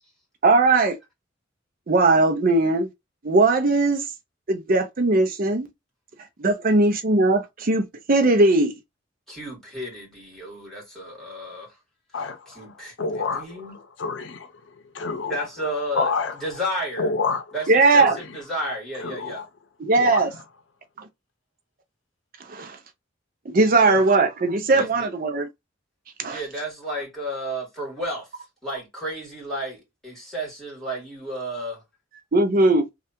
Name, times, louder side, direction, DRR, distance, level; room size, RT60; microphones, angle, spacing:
voice 1, 0.4-1.0 1.9-2.9 3.2-4.1 4.5-5.7 6.4-8.7 17.7-18.2 19.8-20.3 21.0-21.1 22.5-22.8 23.5-25.5 26.2-26.4 32.3-32.9, right 3 dB, 50° right, 0.6 m, -19 dB
voice 2, 9.3-11.7 12.6-13.7 15.3-16.1 16.4-17.1 17.5-19.4 24.7-24.9 26.3-28.3 28.6-31.8, equal, ahead, 2.0 m, -32 dB
voice 3, 12.1-15.5 15.9-16.4 17.0-17.5 18.0-18.2 19.0-19.5 20.0-20.3 23.7-24.0, left 4 dB, 70° left, 0.6 m, -29 dB
3.3 x 2.4 x 2.8 m
head